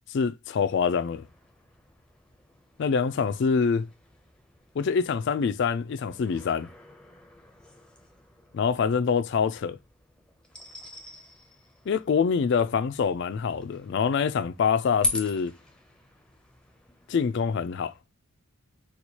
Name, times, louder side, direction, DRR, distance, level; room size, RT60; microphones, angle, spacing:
voice 1, 0.1-1.2 2.8-3.9 4.8-6.7 8.5-9.8 11.9-15.5 17.1-17.9, left 6 dB, 55° left, 0.3 m, -25 dB
sound 1, 0.7-18.0, left 2 dB, 5° left, 0.5 m, -42 dB
4.4 x 2.3 x 2.7 m
head